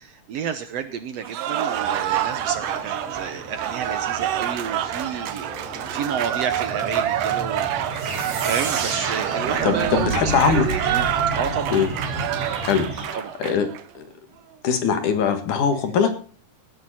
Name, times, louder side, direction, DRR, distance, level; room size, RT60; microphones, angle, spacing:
voice 1, 0.1-5.6 5.8-11.1 11.3-11.8 13.1-13.3, right 7 dB, 65° right, 10 dB, 1.8 m, -30 dB
Cheering / Applause, 1.2-13.8, right 11 dB, 90° right, 2.6 m, -27 dB
sound 1, 1.7-13.1, right 1 dB, 20° right, 5.0 m, -35 dB
sound 2, 8.0-12.5, right 4 dB, 45° right, 2.8 m, -31 dB
voice 2, 9.6-10.7 11.7-11.9 12.6-13.7 13.9-14.1 14.6-16.2, left 6 dB, 70° left, 8 dB, 3.2 m, -22 dB
17.5 x 10.0 x 4.3 m, 0.41 s
omnidirectional pair, 3.7 m